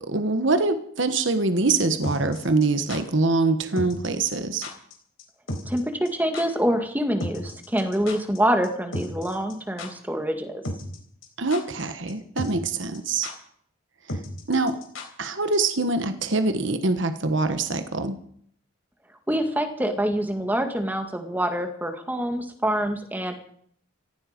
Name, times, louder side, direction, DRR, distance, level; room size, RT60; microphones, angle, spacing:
voice 1, 0.1-4.7 11.4-13.3 14.5-14.8 15.2-18.1, right 3 dB, 60° right, 9 dB, 1.2 m, -24 dB
sound 1, 2.0-3.0 3.8-4.1 4.3-4.4 4.6-4.9 5.2-5.3 5.5-5.8 6.0-6.1 6.3-6.4 7.2-8.4 8.6-8.7 8.9-9.5 9.8-9.9 10.6-11.0 11.2-11.8 12.1-12.2 12.4-12.7 12.9-13.0 13.2-13.3 14.1-15.3 15.5-15.6, left 1 dB, 70° left, 4.1 m, -33 dB
voice 2, 5.7-10.6 19.3-23.3, equal, 10° right, 6 dB, 2.0 m, -26 dB
18.0 x 15.0 x 5.2 m, 0.62 s
head